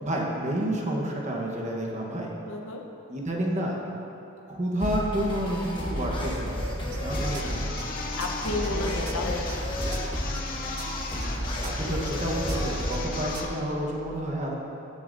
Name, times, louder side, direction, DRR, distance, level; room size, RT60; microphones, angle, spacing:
voice 1, 0.0-2.3 3.1-3.8 4.5-7.8 8.7-8.8 11.2-14.6, right 1 dB, 35° right, -1 dB, 1.1 m, -30 dB
voice 2, 2.4-2.8 8.2-9.8, left 2 dB, 70° left, 1 dB, 1.0 m, -32 dB
sound 1, 4.8-13.4, equal, 25° left, 1.2 m, -32 dB
sound 2, 6.9-13.6, right 5 dB, 85° right, 0.6 m, -43 dB
sound 3, 7.1-13.6, left 3 dB, 40° left, 0.8 m, -37 dB
16.5 x 6.9 x 2.6 m, 2.9 s
head